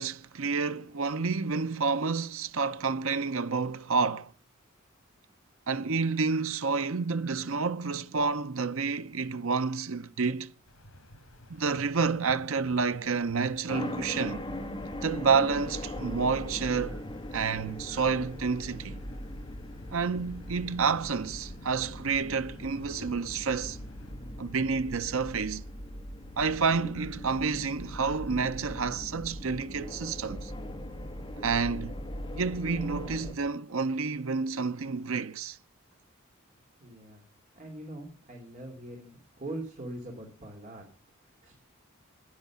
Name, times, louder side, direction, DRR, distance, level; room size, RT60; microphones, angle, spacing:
voice 1, 0.0-4.3 5.7-10.5 11.5-14.5 15.0-17.0 17.3-19.0 19.9-23.8 24.4-25.6 26.4-30.5 31.4-32.0 32.3-35.6, right 5 dB, 70° right, 0.8 m, -29 dB
sound 1, 10.7-24.1, left 1 dB, 75° left, 4.0 m, -53 dB
sound 2, 13.7-33.3, left 1 dB, 25° left, 2.3 m, -40 dB
voice 2, 36.8-37.2 37.6-40.8 41.2-41.6, right 1 dB, 35° right, 2.8 m, -42 dB
11.0 x 10.5 x 7.3 m
head